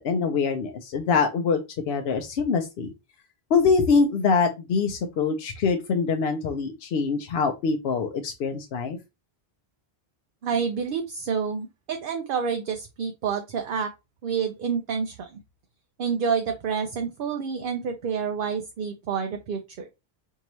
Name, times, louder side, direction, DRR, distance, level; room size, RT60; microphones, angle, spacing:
voice 1, 0.0-1.6 1.9-2.9 3.5-9.0, left 5 dB, 80° left, 4 dB, 0.8 m, -24 dB
voice 2, 10.4-13.9 14.2-15.4 16.0-19.9, right 6 dB, 65° right, 6 dB, 0.7 m, -28 dB
4.5 x 2.7 x 3.0 m, 0.25 s
omnidirectional pair, 1.0 m